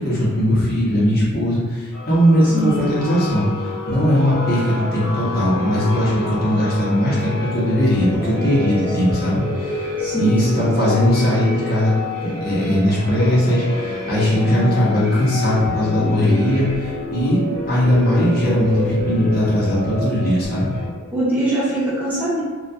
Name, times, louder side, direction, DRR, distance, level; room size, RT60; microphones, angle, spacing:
voice 1, 0.0-3.5 3.9-9.9 10.2-11.9 12.2-17.4 17.7-20.7, equal, 45° left, -8 dB, 0.8 m, -19 dB
sound 1, 1.9-20.9, left 2 dB, 90° left, 1.2 m, -28 dB
voice 2, 2.4-2.8 10.0-10.7 21.1-22.4, right 1 dB, 10° right, -10 dB, 0.6 m, -22 dB
2.6 x 2.3 x 2.3 m, 1.4 s
head